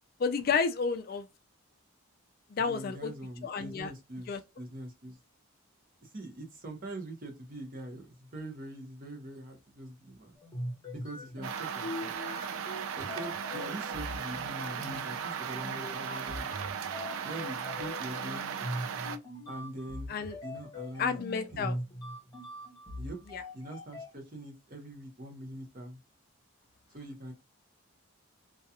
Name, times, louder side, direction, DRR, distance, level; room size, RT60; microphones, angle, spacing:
voice 1, 0.2-1.3 2.5-3.1 3.4-3.9 4.3-4.4 20.1-20.4 21.0-21.8 23.3-23.4, left 5 dB, 40° left, 0.3 m, -31 dB
voice 2, 2.6-5.2 6.0-10.4 10.9-12.1 13.0-16.5 17.2-18.6 19.5-21.2 21.5-21.8 23.0-23.2 23.5-26.0 26.9-27.3, right 1 dB, 40° right, 0.8 m, -43 dB
sound 1, 10.4-24.1, left 1 dB, 20° left, 0.9 m, -42 dB
sound 2, 11.4-19.2, right 7 dB, 70° right, 0.3 m, -37 dB
2.4 x 2.2 x 2.7 m
head